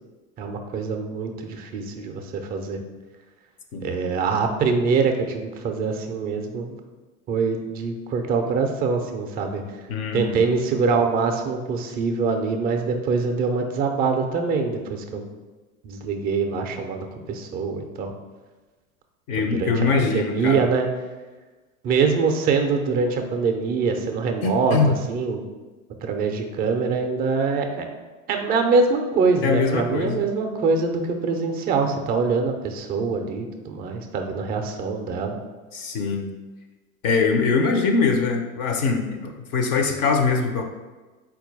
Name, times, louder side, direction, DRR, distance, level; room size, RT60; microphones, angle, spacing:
voice 1, 0.4-2.8 3.8-6.8 7.3-9.6 10.1-15.3 15.8-18.1 19.4-20.9 21.8-25.4 26.0-27.8 28.3-35.4, right 4 dB, 25° right, 5 dB, 0.4 m, -24 dB
voice 2, 9.9-10.4 19.3-20.6 24.4-25.0 29.4-30.2 35.7-36.3 37.0-40.6, left 4 dB, 35° left, 4 dB, 0.5 m, -22 dB
4.1 x 2.3 x 3.9 m, 1.2 s
hypercardioid pair, 90°, 43 cm